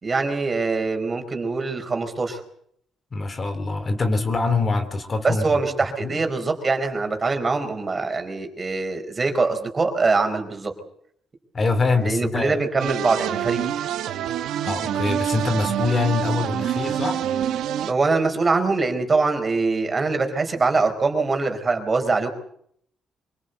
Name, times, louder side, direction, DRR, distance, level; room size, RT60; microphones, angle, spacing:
voice 1, 0.0-2.4 5.2-10.7 12.0-13.7 17.3-17.5 17.8-22.3, right 3 dB, 30° right, 6 dB, 4.6 m, -23 dB
voice 2, 3.1-5.6 6.0-6.2 11.5-12.6 14.6-17.2, left 3 dB, 35° left, 9 dB, 3.0 m, -24 dB
sound 1, 12.8-17.9, right 10 dB, 80° right, 1.3 m, -26 dB
25.0 x 18.0 x 8.1 m, 0.68 s
cardioid pair, 90°, 0 cm